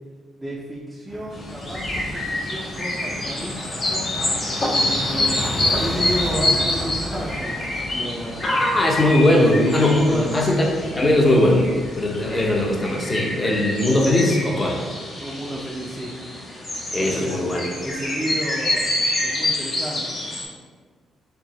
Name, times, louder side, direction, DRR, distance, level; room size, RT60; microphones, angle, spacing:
voice 1, 0.4-4.1 4.7-5.5 5.8-7.6 7.9-8.5 9.9-10.4 15.2-16.1 17.1-17.3 17.8-18.9 19.2-20.1, equal, 10° right, -6 dB, 0.6 m, -31 dB
sound 1, 1.1-12.9, equal, 65° left, 1.2 m, -32 dB
sound 2, 1.3-20.4, left 1 dB, 40° left, 1.3 m, -27 dB
voice 2, 8.4-10.7 10.9-11.6 12.0-14.8 16.9-17.7, left 1 dB, 25° left, -1 dB, 0.8 m, -19 dB
4.5 x 2.0 x 3.9 m, 1.5 s
cardioid pair, 90°, 0 cm